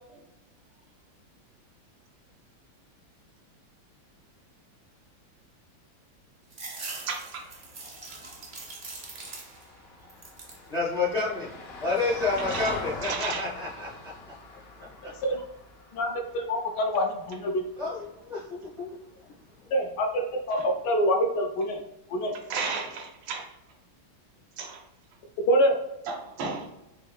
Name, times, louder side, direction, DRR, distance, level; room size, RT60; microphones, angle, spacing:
sound 1, 6.5-9.8 10.1-10.7 11.2-11.9, right 3 dB, 60° right, 0.5 m, -42 dB
voice 1, 7.1-7.4 12.4-13.5 20.5-20.6 22.3-23.5 24.6-24.8 26.1-26.8, right 5 dB, 80° right, 2 dB, 1.6 m, -34 dB
Vehicle, 7.2-17.6 19.9-20.0, left 3 dB, 85° left, 0.5 m, -42 dB
voice 2, 10.7-11.5 11.8-14.1 14.8-14.9 17.8-18.9, left 3 dB, 40° left, -4 dB, 0.6 m, -29 dB
voice 3, 15.9-17.6 19.7-21.8 22.1-22.3 25.5-25.8, equal, 70° left, 2 dB, 1.1 m, -25 dB
5.6 x 3.1 x 2.3 m, 0.89 s
omnidirectional pair, 2.1 m